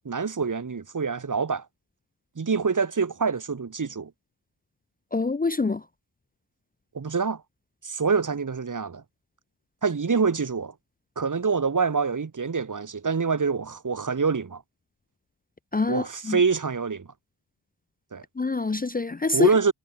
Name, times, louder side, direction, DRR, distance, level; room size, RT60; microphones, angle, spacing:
voice 1, 0.0-1.7 2.4-4.1 6.9-7.4 7.8-9.0 9.8-10.7 11.2-14.6 15.9-17.1 18.1-18.2 19.3-19.7, right 5 dB, 50° right, 2.5 m, -26 dB
voice 2, 5.1-5.8 15.7-16.4 18.4-19.5, left 3 dB, 20° left, 0.6 m, -25 dB
wide cardioid pair, 120°, 41 cm